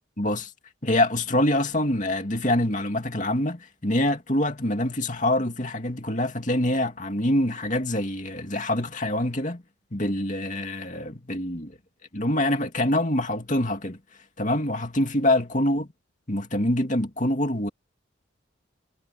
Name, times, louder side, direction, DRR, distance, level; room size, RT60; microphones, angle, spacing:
voice 1, 0.2-0.5 0.8-9.6 9.9-11.8 12.1-14.0 14.4-15.9 16.3-17.7, left 1 dB, 40° left, 2.7 m, -25 dB
head